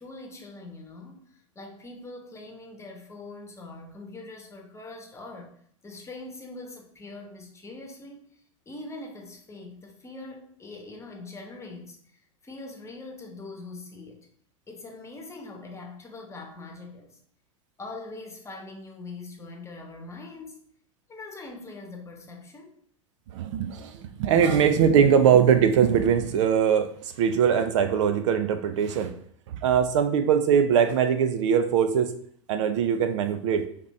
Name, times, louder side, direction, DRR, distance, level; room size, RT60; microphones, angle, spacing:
voice 1, 0.0-5.5 5.8-8.2 8.7-14.3 14.7-17.2 17.8-20.6 21.1-22.7, left 2 dB, 15° left, 2 dB, 1.0 m, -42 dB
voice 2, 23.3-29.1 29.5-32.1 32.5-33.6, right 7 dB, 60° right, 9 dB, 0.5 m, -21 dB
5.0 x 2.9 x 3.1 m, 0.62 s
hypercardioid pair, 90°, 17 cm